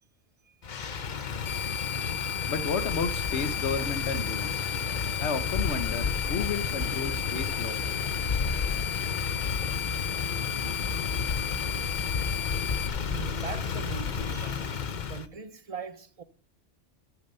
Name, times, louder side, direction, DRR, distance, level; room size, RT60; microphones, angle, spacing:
voice 1, 0.4-1.3 12.2-12.4 13.0-16.2, right 5 dB, 35° right, 0.9 m, -42 dB
Motor vehicle (road), 0.6-15.3, left 6 dB, 45° left, 0.8 m, -32 dB
sound 1, 1.5-12.9, left 8 dB, 90° left, 1.6 m, -34 dB
voice 2, 2.5-4.7 5.2-8.1, left 5 dB, 70° left, 1.3 m, -32 dB
12.5 x 7.2 x 5.5 m
omnidirectional pair, 1.2 m